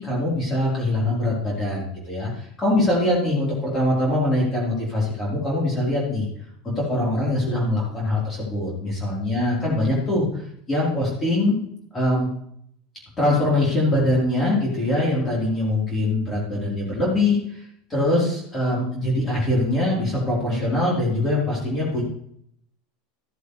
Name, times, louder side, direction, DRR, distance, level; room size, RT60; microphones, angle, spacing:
voice 1, 0.0-6.3 6.6-10.4 10.7-11.5 11.9-12.3 13.2-17.6 17.9-22.0, left 1 dB, 20° left, -5 dB, 3.9 m, -23 dB
14.0 x 7.8 x 3.3 m, 0.68 s
supercardioid pair, 130°, 0 cm